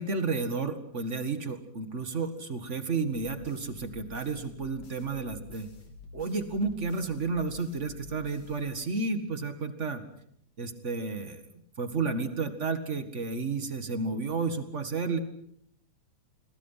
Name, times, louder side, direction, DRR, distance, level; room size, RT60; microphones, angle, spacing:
voice 1, 0.0-5.7 6.1-10.0 10.6-11.4 11.8-15.2, right 4 dB, 35° right, 9 dB, 1.1 m, -32 dB
sound 1, 3.1-9.2, left 4 dB, 60° left, 5.5 m, -49 dB
28.5 x 22.5 x 5.8 m, 0.70 s
omnidirectional pair, 4.0 m